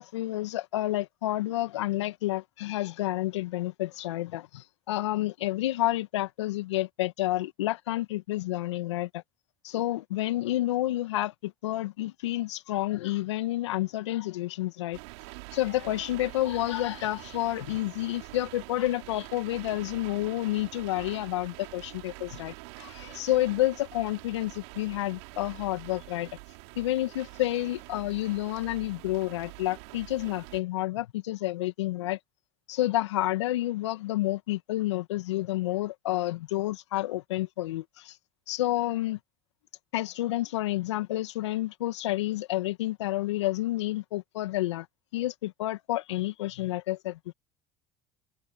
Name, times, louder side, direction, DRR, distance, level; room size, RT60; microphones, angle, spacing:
voice 1, 0.0-9.2 9.6-15.0 15.5-26.3 26.8-32.2 32.7-38.2 38.5-39.2 39.9-44.9 45.1-47.2, left 16 dB, 80° left, 1.9 m, -30 dB
sound 1, 14.9-30.6, right 29 dB, 70° right, 3.6 m, -45 dB
hypercardioid pair, 75°, 15 cm